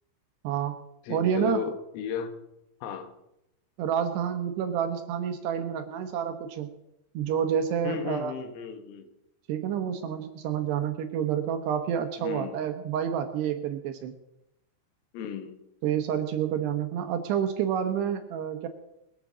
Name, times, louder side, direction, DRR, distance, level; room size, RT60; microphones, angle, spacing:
voice 1, 0.4-0.8 1.1-1.6 3.8-6.8 7.1-8.3 9.5-14.1 15.8-18.7, right 8 dB, 75° right, 8 dB, 2.6 m, -29 dB
voice 2, 1.1-2.4 2.8-3.1 7.8-9.1 12.2-12.6 15.1-15.6, left 7 dB, 85° left, 8 dB, 4.2 m, -35 dB
21.5 x 8.9 x 7.3 m, 0.85 s
omnidirectional pair, 5.9 m